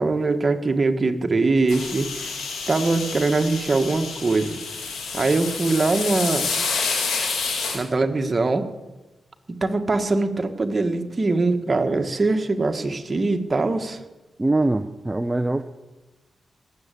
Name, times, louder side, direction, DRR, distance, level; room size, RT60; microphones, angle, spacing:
voice 1, 0.0-2.3 2.7-4.6 5.1-6.5 7.7-8.7 9.5-14.0, right 3 dB, 40° right, 6 dB, 1.8 m, -22 dB
sound 1, 1.7-7.8, left 4 dB, 85° left, 3.5 m, -28 dB
voice 2, 14.4-15.6, right 2 dB, 20° right, 8 dB, 0.8 m, -22 dB
19.0 x 8.2 x 8.5 m, 1.1 s
supercardioid pair, 45°, 0 cm